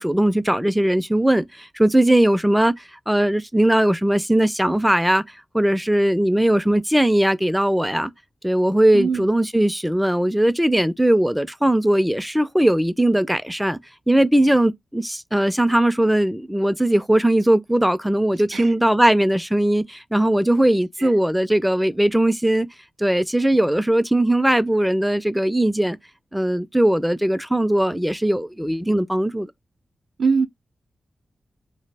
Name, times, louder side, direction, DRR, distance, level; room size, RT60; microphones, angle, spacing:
voice 1, 0.0-5.2 5.5-8.1 8.4-13.8 14.1-22.7 23.0-26.0 26.3-29.5, right 1 dB, 5° right, 0.3 m, -19 dB
voice 2, 8.9-9.3 18.5-18.7 21.0-21.1 30.2-30.5, right 5 dB, 80° right, 0.3 m, -22 dB
2.1 x 2.0 x 3.3 m
cardioid pair, 50°, 0 cm